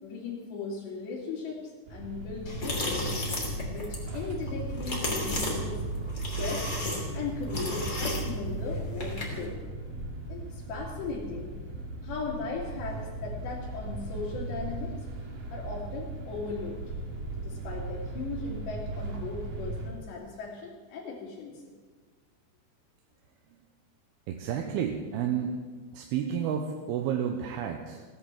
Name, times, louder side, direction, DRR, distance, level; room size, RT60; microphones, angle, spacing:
voice 1, 0.0-3.2 3.7-5.8 6.3-6.7 7.1-9.6 10.3-11.5 12.0-14.9 15.5-16.8 17.4-21.5, left 4 dB, 85° left, -6 dB, 4.7 m, -37 dB
sound 1, 1.9-19.9, right 2 dB, 60° right, 3.8 m, -37 dB
sound 2, 2.5-9.4, left 1 dB, 25° left, 2.7 m, -34 dB
voice 2, 24.3-25.6 25.9-28.0, right 8 dB, 75° right, 3 dB, 2.7 m, -31 dB
16.0 x 11.0 x 7.6 m, 1.4 s
omnidirectional pair, 4.9 m